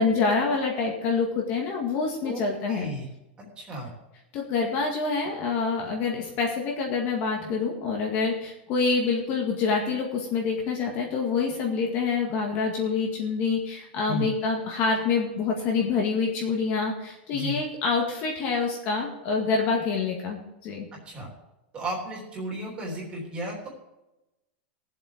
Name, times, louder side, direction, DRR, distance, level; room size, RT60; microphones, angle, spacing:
voice 1, 0.0-2.9 4.3-20.9, left 4 dB, 35° left, 0 dB, 1.9 m, -26 dB
voice 2, 2.2-3.1 3.4-3.9 14.1-14.3 17.3-17.6 21.0-21.3 21.7-23.7, right 1 dB, 15° right, -2 dB, 3.3 m, -34 dB
17.0 x 7.7 x 5.0 m, 0.95 s
supercardioid pair, 175°, 6 cm